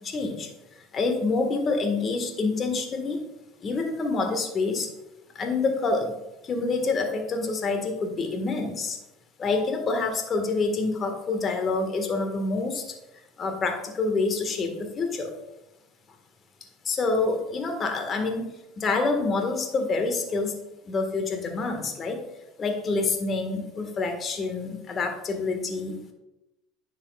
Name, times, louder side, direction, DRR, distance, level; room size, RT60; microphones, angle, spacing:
voice 1, 0.0-0.5 0.8-3.2 3.6-4.9 5.3-6.1 6.4-9.0 9.4-12.9 13.4-15.3 16.8-18.5 18.8-20.5 20.8-22.2 22.6-26.1, left 3 dB, 35° left, 5 dB, 1.6 m, -27 dB
10.0 x 6.6 x 2.4 m, 0.94 s
hypercardioid pair, 75°, 0 cm